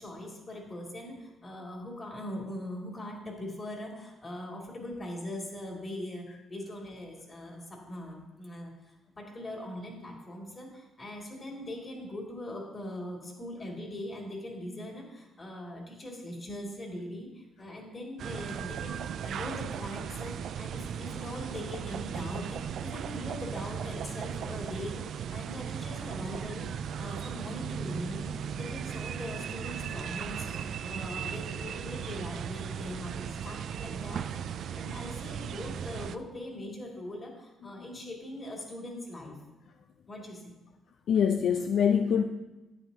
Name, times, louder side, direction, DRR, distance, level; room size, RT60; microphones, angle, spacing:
voice 1, 0.0-39.4 40.1-40.5, left 1 dB, 30° left, 0 dB, 2.5 m, -41 dB
sound 1, 18.2-36.2, right 8 dB, 65° right, 0.3 m, -37 dB
voice 2, 41.1-42.2, left 7 dB, 65° left, 6 dB, 0.4 m, -25 dB
11.0 x 8.8 x 2.8 m, 1.1 s
cardioid pair, 90°, 0 cm